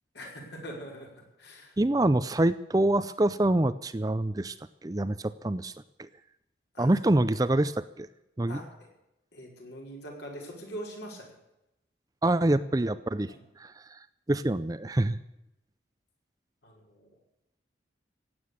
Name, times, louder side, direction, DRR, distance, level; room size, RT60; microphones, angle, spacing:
voice 1, 0.1-1.8 6.7-7.2 8.5-8.9 9.3-11.3 13.3-13.4 16.6-17.1, equal, 65° left, 0 dB, 5.4 m, -43 dB
voice 2, 1.8-4.5 4.8-5.7 6.0-6.1 6.8-8.1 8.4-8.6 12.2-14.0 14.3-15.2, right 1 dB, 20° right, 13 dB, 0.5 m, -26 dB
16.0 x 9.5 x 8.5 m, 0.88 s
head